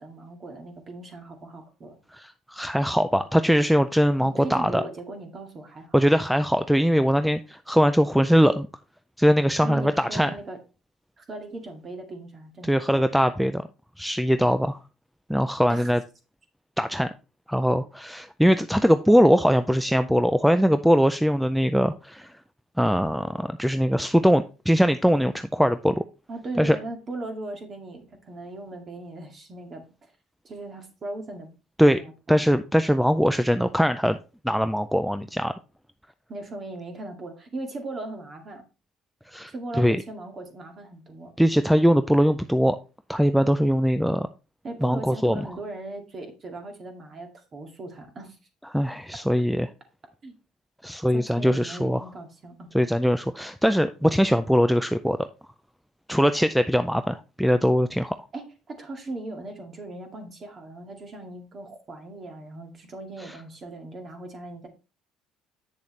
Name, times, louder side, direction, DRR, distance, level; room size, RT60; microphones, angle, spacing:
voice 1, 0.0-2.0 4.2-6.0 9.6-10.6 11.2-13.1 15.7-15.9 26.3-29.8 30.4-31.5 31.9-32.1 36.3-38.6 39.5-41.3 44.6-48.4 50.2-50.3 51.1-52.7 58.3-64.7, right 2 dB, 30° right, 5 dB, 2.1 m, -38 dB
voice 2, 2.1-4.8 5.9-8.7 9.2-10.3 12.6-13.6 14.0-14.8 15.3-16.0 16.8-17.1 17.5-22.3 22.8-26.0 26.6-26.8 31.8-32.0 32.3-34.2 34.4-35.5 39.3-40.0 41.4-42.8 43.1-44.3 44.8-45.5 48.7-49.7 50.8-52.0 52.7-55.3 56.1-58.2 63.2-63.3, equal, ahead, 11 dB, 0.4 m, -21 dB
8.2 x 6.9 x 3.2 m, 0.31 s
cardioid pair, 130°, 0 cm